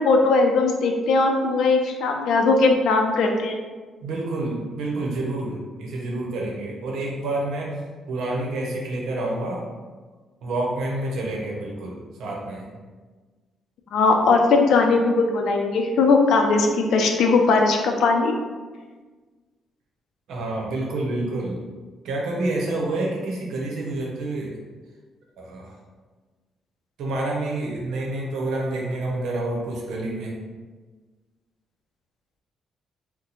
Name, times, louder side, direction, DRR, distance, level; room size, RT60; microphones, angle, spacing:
voice 1, 0.0-3.6 13.9-18.3, left 3 dB, 75° left, 3 dB, 0.4 m, -19 dB
voice 2, 4.0-7.7 8.1-9.6 10.4-12.7 20.3-21.6 22.0-24.6 25.4-25.7 27.0-30.3, right 2 dB, 80° right, -2 dB, 0.8 m, -28 dB
2.9 x 2.1 x 4.0 m, 1.4 s
cardioid pair, 90°, 0 cm